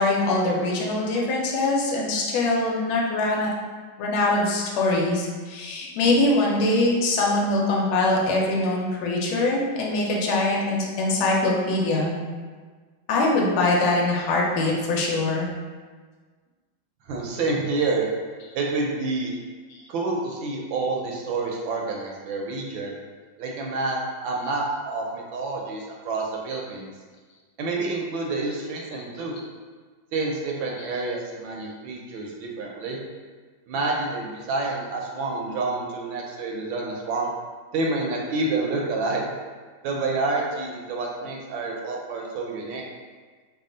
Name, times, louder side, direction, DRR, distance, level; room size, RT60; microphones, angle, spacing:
voice 1, 0.0-3.5 4.0-12.2 13.1-15.5 19.7-19.8, left 2 dB, 85° left, -3 dB, 1.5 m, -23 dB
voice 2, 17.1-18.1 18.5-19.3 19.9-22.9 23.4-24.0 24.2-26.9 27.6-29.4 30.1-33.0 33.7-37.3 37.7-39.2 39.8-42.8, right 3 dB, 75° right, -1 dB, 1.3 m, -28 dB
3.5 x 2.3 x 3.7 m, 1.5 s
omnidirectional pair, 2.2 m